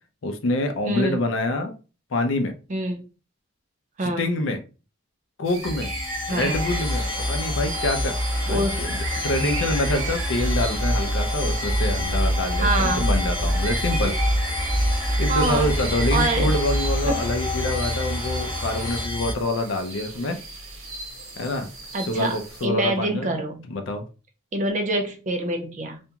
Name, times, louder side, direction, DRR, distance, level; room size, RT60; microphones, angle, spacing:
voice 1, 0.2-1.8 2.1-2.5 4.0-4.6 5.4-5.9 6.3-14.1 15.2-20.4 21.4-21.7 22.0-23.3 23.7-24.0, left 2 dB, 65° left, 0.5 m, -26 dB
voice 2, 0.9-1.2 2.7-3.0 4.0-4.3 6.3-6.6 8.5-8.8 12.6-13.0 15.3-15.7 16.1-16.5 17.1-17.2 21.9-23.6 24.5-26.0, right 1 dB, 35° right, 0.5 m, -25 dB
sound 1, 5.5-22.7, right 3 dB, 75° right, 1.2 m, -37 dB
sound 2, 5.6-19.3, left 1 dB, 20° left, 0.7 m, -25 dB
sound 3, 6.5-19.1, right 2 dB, 55° right, 1.1 m, -38 dB
2.5 x 2.2 x 2.8 m
head